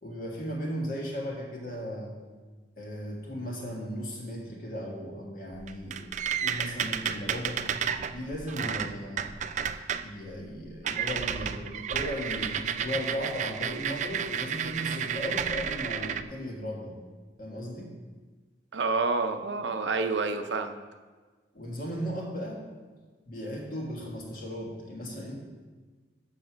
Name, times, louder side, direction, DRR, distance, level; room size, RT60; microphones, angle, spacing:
voice 1, 0.0-2.1 2.8-6.1 6.4-7.7 8.1-9.4 10.0-17.0 17.4-17.9 21.5-22.6 23.3-25.4, equal, 50° left, -1 dB, 1.8 m, -36 dB
sound 1, 5.5-10.1 10.4-10.6 10.8-16.2, right 8 dB, 40° right, 0.3 m, -32 dB
voice 2, 18.7-20.7, right 3 dB, 75° right, 7 dB, 0.6 m, -28 dB
7.3 x 6.5 x 6.1 m, 1.4 s
head